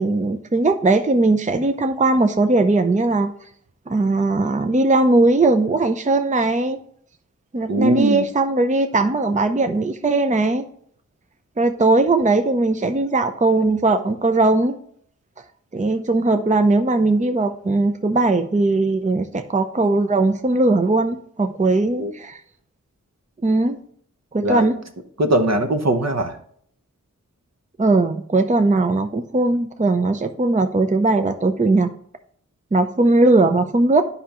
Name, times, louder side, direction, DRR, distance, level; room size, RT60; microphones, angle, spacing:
voice 1, 0.0-3.3 3.9-6.8 7.5-10.6 11.6-14.8 15.7-22.4 23.4-23.8 24.3-24.8 27.8-31.9 32.7-34.0, right 2 dB, 25° right, 8 dB, 0.5 m, -19 dB
voice 2, 7.7-8.2 22.0-22.1 24.4-24.7 25.2-26.4, right 1 dB, 55° right, 7 dB, 0.9 m, -20 dB
9.8 x 5.6 x 2.9 m, 0.63 s
wide cardioid pair, 50°, 31 cm